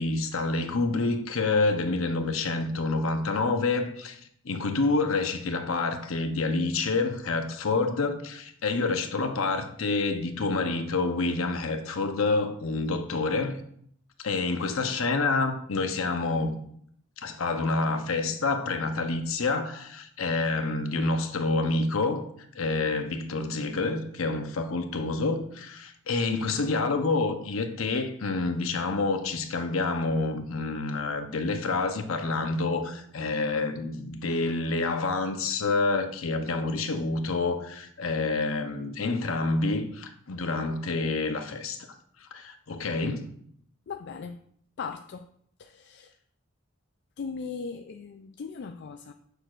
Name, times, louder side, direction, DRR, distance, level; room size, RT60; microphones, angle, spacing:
voice 1, 0.0-4.2 4.4-13.6 14.2-16.6 17.2-22.3 22.5-41.9 42.3-43.3, left 3 dB, 70° left, 0.8 m, -28 dB
voice 2, 43.9-44.4 44.8-45.3 45.6-46.2 47.2-49.1, left 5 dB, 55° left, 0.4 m, -38 dB
7.8 x 6.7 x 2.5 m
head